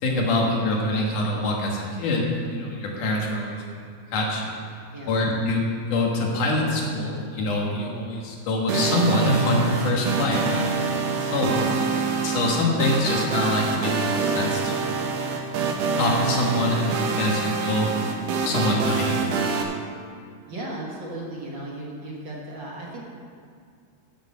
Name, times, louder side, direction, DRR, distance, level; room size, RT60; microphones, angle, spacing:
voice 1, 0.0-4.6 5.0-15.0 16.0-19.5, left 1 dB, 75° left, -1 dB, 3.1 m, -25 dB
voice 2, 4.9-5.2 20.5-23.0, right 1 dB, 45° right, -3 dB, 1.9 m, -36 dB
sound 1, 8.7-19.6, right 4 dB, 75° right, 2.7 m, -26 dB
11.5 x 6.7 x 7.5 m, 2.1 s
omnidirectional pair, 3.7 m